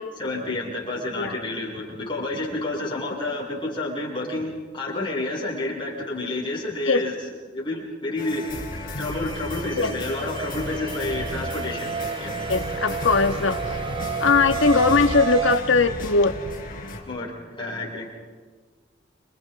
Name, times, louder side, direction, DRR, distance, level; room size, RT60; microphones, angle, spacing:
voice 1, 0.2-7.1 7.5-8.5 9.0-12.4 17.1-18.2, left 2 dB, 25° left, -4 dB, 7.6 m, -30 dB
sound 1, 8.2-17.0, left 1 dB, 45° left, 4.6 m, -34 dB
sound 2, 8.5-15.6, right 6 dB, 25° right, 0.8 m, -31 dB
voice 2, 12.5-13.8 14.2-16.4, left 4 dB, 75° left, 7 dB, 1.4 m, -20 dB
29.5 x 29.5 x 4.2 m, 1.4 s
head